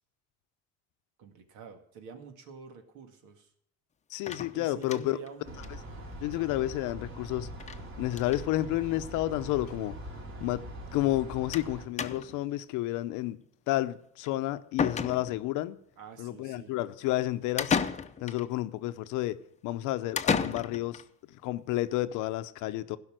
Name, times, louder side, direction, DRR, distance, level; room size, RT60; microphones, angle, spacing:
voice 1, 1.2-3.5 4.5-5.7 10.4-10.5 16.0-16.7, right 6 dB, 85° right, 2.0 m, -48 dB
voice 2, 4.1-5.2 6.2-7.5 8.0-10.1 10.4-10.6 10.9-13.4 13.7-15.8 16.2-17.7 18.2-21.0 21.4-23.0, left 16 dB, 90° left, 0.8 m, -31 dB
sound 1, 4.3-5.3 5.6-5.7 6.0-6.1 6.3-6.4 7.6-7.8 8.1-8.5 9.3-9.4 9.7-9.8 11.5-11.7 12.0-12.5 14.3-14.4 14.8-15.6 17.6-18.5 20.2-21.0, left 6 dB, 25° left, 0.7 m, -32 dB
sound 2, 5.4-11.9, right 1 dB, 45° right, 3.4 m, -43 dB
15.5 x 5.7 x 7.6 m
cardioid pair, 125°, 30 cm